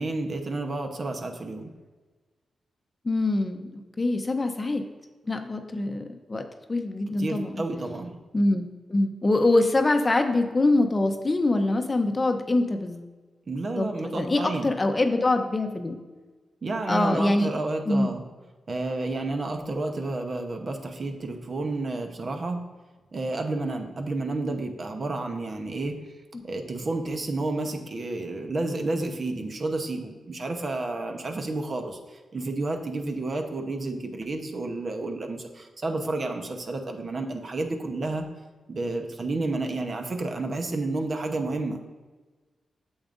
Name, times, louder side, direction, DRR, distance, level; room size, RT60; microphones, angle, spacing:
voice 1, 0.0-1.7 7.2-8.2 13.5-14.7 16.6-18.2 18.7-22.6 23.1-26.0 26.4-38.3 38.7-41.8, right 2 dB, 50° right, 4 dB, 0.9 m, -30 dB
voice 2, 3.0-4.8 5.3-6.4 6.7-7.6 8.3-13.1 13.7-16.0 16.9-17.5 17.9-18.2 26.3-26.4, left 2 dB, 30° left, 6 dB, 0.7 m, -24 dB
8.6 x 7.1 x 2.6 m, 1.3 s
cardioid pair, 80°, 0 cm